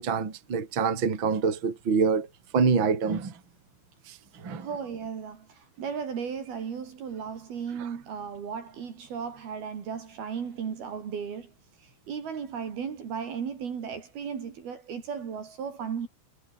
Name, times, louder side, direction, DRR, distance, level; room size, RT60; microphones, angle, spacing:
voice 1, 0.0-2.3 2.5-3.4 4.1-4.7 7.7-7.9, right 5 dB, 25° right, 3.5 m, -26 dB
voice 2, 4.5-5.5 5.8-11.5 12.1-16.1, right 6 dB, 50° right, 4.6 m, -35 dB
omnidirectional pair, 5.9 m